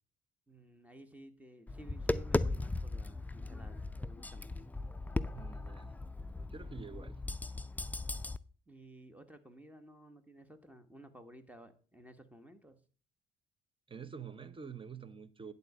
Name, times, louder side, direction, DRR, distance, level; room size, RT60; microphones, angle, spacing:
voice 1, 0.5-4.6 8.7-12.8, right 1 dB, 5° right, 1.4 m, -55 dB
Tap, 1.7-8.4, left 2 dB, 10° left, 0.4 m, -37 dB
voice 2, 5.3-5.9 6.5-7.2 13.9-15.5, right 6 dB, 25° right, 0.9 m, -47 dB
10.5 x 4.1 x 7.2 m
cardioid pair, 90°, 20 cm